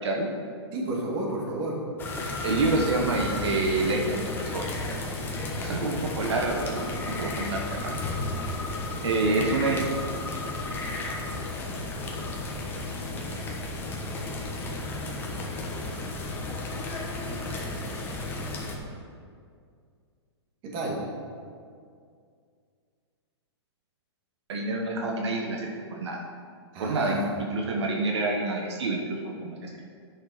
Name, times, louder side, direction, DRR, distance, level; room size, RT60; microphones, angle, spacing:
voice 1, 0.7-1.8 20.6-21.0 26.7-27.3, right 2 dB, 30° right, -2 dB, 2.0 m, -31 dB
sound 1, 2.0-18.8, left 2 dB, 15° left, 1.0 m, -33 dB
voice 2, 2.4-4.6 5.5-7.9 9.0-9.8 24.5-26.2 26.8-29.9, right 2 dB, 75° right, 0 dB, 1.3 m, -28 dB
10.5 x 6.4 x 4.9 m, 2.2 s
hypercardioid pair, 150°, 15 cm